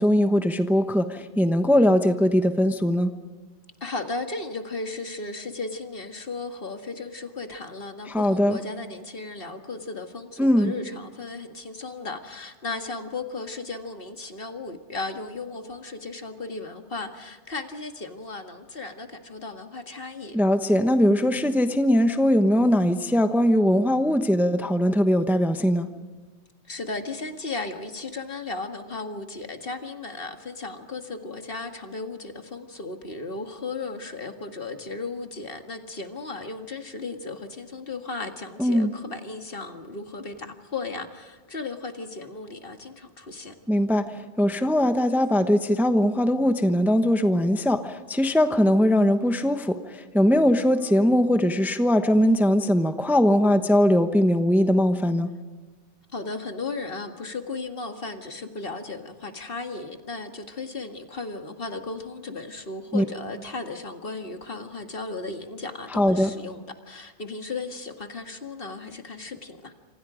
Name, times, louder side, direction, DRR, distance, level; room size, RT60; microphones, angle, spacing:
voice 1, 0.0-3.1 8.1-8.6 10.4-10.7 20.3-25.9 38.6-38.9 43.7-44.0 44.4-55.3 62.9-63.0 65.9-66.3, equal, ahead, 8 dB, 1.0 m, -21 dB
voice 2, 3.8-20.4 26.7-43.5 56.1-69.7, left 3 dB, 55° left, 6 dB, 2.1 m, -35 dB
28.0 x 26.0 x 5.1 m, 1.4 s
omnidirectional pair, 1.2 m